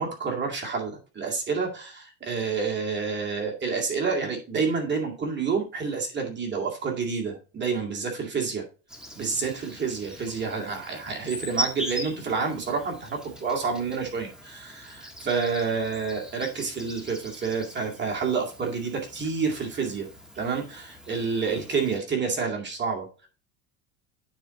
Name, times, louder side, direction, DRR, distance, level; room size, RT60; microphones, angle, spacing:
voice 1, 0.0-8.6 9.1-20.1 20.4-23.1, right 5 dB, 30° right, 0 dB, 2.3 m, -29 dB
Insect, 8.9-22.0, equal, ahead, 1.5 m, -40 dB
9.2 x 4.5 x 4.0 m, 0.35 s
supercardioid pair, 100°, 39 cm